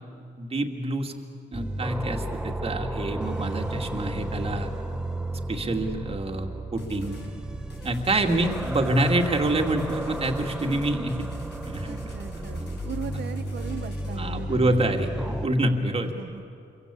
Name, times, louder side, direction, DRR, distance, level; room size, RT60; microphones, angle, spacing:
voice 1, 0.4-1.1 1.5-4.7 5.5-7.2 7.8-11.3 11.6-12.1 14.2-16.1, right 1 dB, 30° right, 3 dB, 2.5 m, -26 dB
sound 1, 1.5-15.5, right 1 dB, 5° right, 1.2 m, -33 dB
sound 2, 6.8-7.3 7.7-14.2, equal, 70° left, 7.5 m, -45 dB
voice 2, 8.4-8.9 11.8-12.6 12.8-15.0 16.0-16.4, right 7 dB, 65° right, 8 dB, 1.6 m, -39 dB
27.5 x 23.5 x 8.4 m, 2.6 s
cardioid pair, 115°, 19 cm